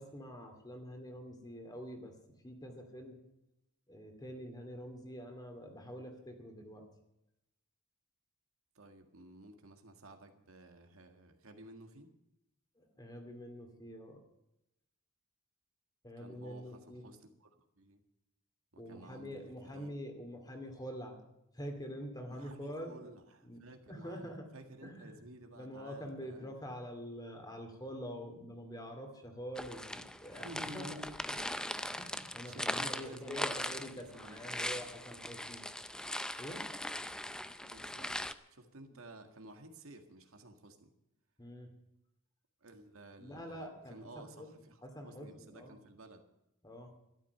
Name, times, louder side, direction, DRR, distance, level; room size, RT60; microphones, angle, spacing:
voice 1, 0.0-2.1 2.4-3.2 3.9-6.8 12.8-14.2 16.0-17.0 18.8-21.2 21.5-23.1 23.4-23.6 23.9-24.5 24.8-25.1 25.6-30.5 30.7-31.4 32.0-35.6 36.4-36.6 41.4-41.7 43.2-44.5 44.8-45.8 46.6-46.9, equal, 20° left, 4 dB, 2.4 m, -46 dB
voice 2, 8.7-12.1 16.2-17.5 17.8-18.0 18.7-19.9 22.3-26.5 30.4-31.2 31.7-32.0 32.4-33.8 34.1-34.8 37.6-38.2 38.5-40.9 42.6-46.2, right 1 dB, 75° right, 5 dB, 1.8 m, -53 dB
sound 1, 29.6-38.3, left 1 dB, 5° left, 0.5 m, -40 dB
12.5 x 12.0 x 6.7 m, 0.87 s
head